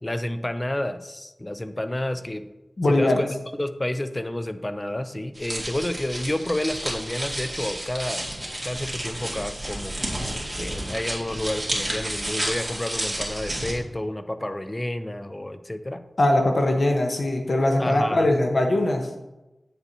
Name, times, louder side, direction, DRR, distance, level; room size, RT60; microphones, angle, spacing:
voice 1, 0.0-2.4 3.0-8.4 8.6-9.9 10.5-16.0 17.8-18.3, left 1 dB, 25° left, 10 dB, 0.5 m, -30 dB
voice 2, 2.8-3.2 16.2-19.1, left 1 dB, 65° left, 3 dB, 1.1 m, -21 dB
sound 1, 5.3-13.7, right 1 dB, 20° right, 2.3 m, -31 dB
8.4 x 6.9 x 2.8 m, 1.0 s
wide cardioid pair, 55°, 0 cm